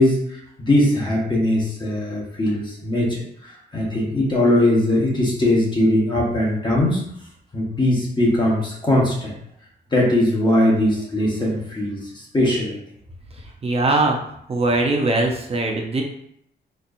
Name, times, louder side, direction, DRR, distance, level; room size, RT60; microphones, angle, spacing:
voice 1, 0.0-7.1 7.5-9.4 9.9-12.8, left 1 dB, 25° left, -3 dB, 1.0 m, -20 dB
voice 2, 13.6-14.2 14.5-16.0, right 2 dB, 30° right, 1 dB, 0.6 m, -20 dB
4.3 x 2.6 x 2.5 m, 0.70 s
wide cardioid pair, 135°, 19 cm